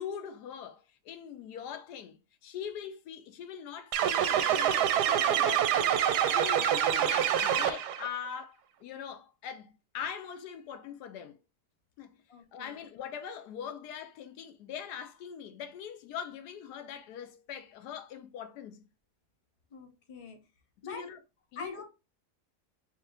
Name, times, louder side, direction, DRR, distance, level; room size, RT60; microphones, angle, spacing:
voice 1, 0.0-11.4 12.0-12.2 12.5-18.8 20.8-21.2 21.5-21.8, left 8 dB, 80° left, 1.2 m, -42 dB
sound 1, 3.9-8.1, right 9 dB, 85° right, 1.2 m, -26 dB
voice 2, 12.3-12.8 19.7-20.4 20.8-21.0 21.6-21.8, left 4 dB, 30° left, 0.6 m, -45 dB
3.3 x 3.0 x 3.5 m
omnidirectional pair, 1.7 m